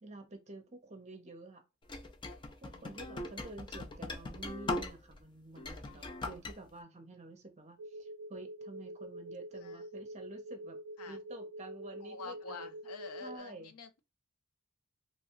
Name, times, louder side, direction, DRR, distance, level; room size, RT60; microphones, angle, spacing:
voice 1, 0.0-1.6 2.6-10.8 11.1-12.7 13.2-13.7, right 2 dB, 30° right, 0.7 m, -49 dB
sound 1, 1.9-5.2 5.6-6.5, left 2 dB, 20° left, 0.3 m, -40 dB
voice 2, 2.7-3.3 5.8-6.2 9.6-9.8 11.0-11.2 12.0-14.0, left 5 dB, 80° left, 0.5 m, -48 dB
sound 2, 7.8-13.4, right 1 dB, 80° right, 0.3 m, -46 dB
2.8 x 2.2 x 2.9 m
head